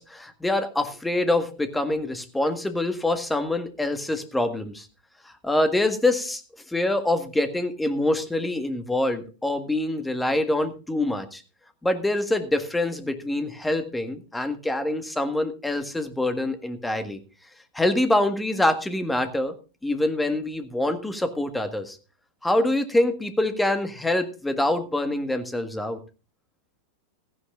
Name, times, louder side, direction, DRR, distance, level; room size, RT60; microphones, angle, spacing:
voice 1, 0.0-4.9 5.2-6.4 6.7-11.4 11.8-17.2 17.7-19.5 19.8-22.0 22.4-26.0, left 1 dB, 5° left, 9 dB, 1.6 m, -25 dB
16.0 x 15.0 x 2.5 m, 0.32 s
figure-of-eight pair, 90°, 0 cm